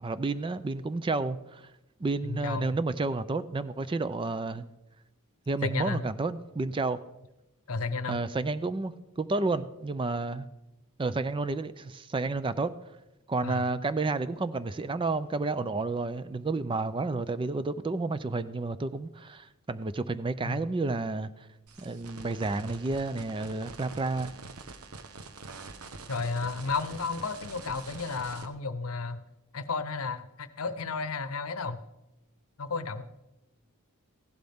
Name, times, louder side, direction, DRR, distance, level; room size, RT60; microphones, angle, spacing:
voice 1, 0.0-1.6 2.0-4.7 5.5-7.0 8.1-10.5 11.0-12.7 13.3-21.3 21.8-24.3, right 3 dB, 25° right, 14 dB, 0.4 m, -31 dB
voice 2, 2.2-2.7 5.6-6.0 7.7-8.2 13.4-13.6 20.4-20.6 26.1-29.2 29.5-31.8 32.6-33.0, left 4 dB, 70° left, 13 dB, 0.8 m, -33 dB
sound 1, 21.7-28.5, right 3 dB, 85° right, 1.0 m, -45 dB
15.5 x 11.5 x 3.6 m, 0.92 s
head